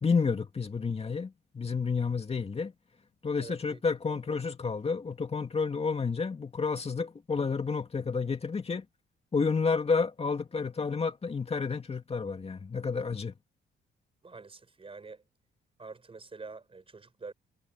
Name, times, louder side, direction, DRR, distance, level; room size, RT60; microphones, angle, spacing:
voice 1, 0.0-2.7 3.2-8.8 9.3-13.3, left 5 dB, 30° left, 2.4 m, -30 dB
voice 2, 3.4-3.8 4.1-4.2 14.2-15.2 15.8-17.3, right 4 dB, 30° right, 4.7 m, -46 dB
cardioid pair, 90°, 20 cm